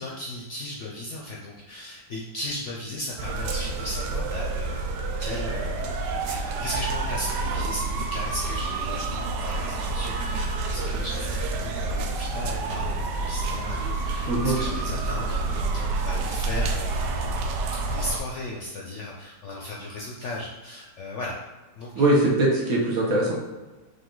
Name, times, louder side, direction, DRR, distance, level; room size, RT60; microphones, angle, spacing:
voice 1, 0.0-17.5 17.8-21.3 21.8-21.9, left 1 dB, 65° left, -2 dB, 0.7 m, -36 dB
sound 1, 3.2-18.2, right 3 dB, 85° right, 1.2 m, -28 dB
voice 2, 21.9-23.3, right 1 dB, 60° right, -3 dB, 1.5 m, -21 dB
5.2 x 2.7 x 3.8 m, 1.2 s
omnidirectional pair, 1.8 m